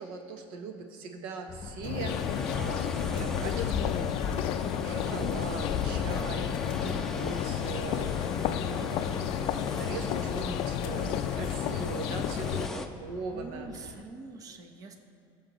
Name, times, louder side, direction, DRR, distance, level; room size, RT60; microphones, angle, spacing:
voice 1, 0.0-14.0, right 5 dB, 75° right, 5 dB, 1.0 m, -41 dB
sound 1, 1.5-14.0, left 5 dB, 35° left, 0.8 m, -42 dB
sound 2, 1.8-12.7, left 12 dB, 55° left, 0.4 m, -32 dB
sound 3, 2.1-12.9, left 2 dB, 5° left, 0.7 m, -37 dB
voice 2, 13.3-15.0, right 3 dB, 35° right, 5 dB, 1.0 m, -45 dB
19.0 x 7.4 x 3.0 m, 2.7 s
supercardioid pair, 125°, 11 cm